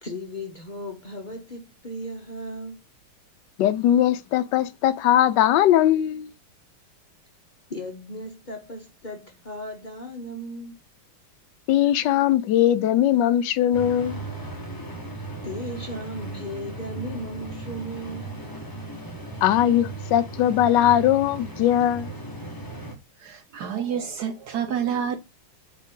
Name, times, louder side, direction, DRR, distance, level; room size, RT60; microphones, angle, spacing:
voice 1, 0.0-2.8 7.7-10.7 15.1-18.4, equal, 55° left, 0.5 m, -36 dB
voice 2, 3.6-6.3 11.7-14.2 19.4-22.1, left 11 dB, 70° left, 1.1 m, -20 dB
sound 1, 13.7-22.9, right 2 dB, 15° left, 1.0 m, -36 dB
voice 3, 23.2-25.2, right 8 dB, 65° right, 1.0 m, -28 dB
8.2 x 3.6 x 3.7 m
omnidirectional pair, 2.3 m